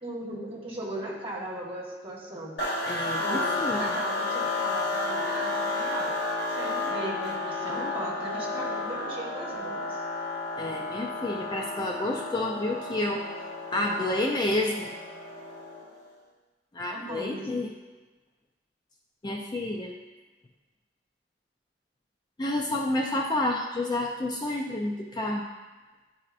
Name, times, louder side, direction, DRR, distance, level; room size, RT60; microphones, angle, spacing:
voice 1, 0.0-2.6 3.2-6.1 6.5-10.0 16.9-17.7, right 1 dB, 30° right, -5 dB, 1.4 m, -37 dB
sound 1, 2.6-16.0, left 2 dB, 65° left, 1.0 m, -32 dB
voice 2, 2.9-4.0 10.6-13.2 13.7-14.9 16.7-17.7 19.2-20.0 22.4-25.4, left 1 dB, 25° left, 0 dB, 0.4 m, -29 dB
9.7 x 4.2 x 2.5 m, 1.2 s
head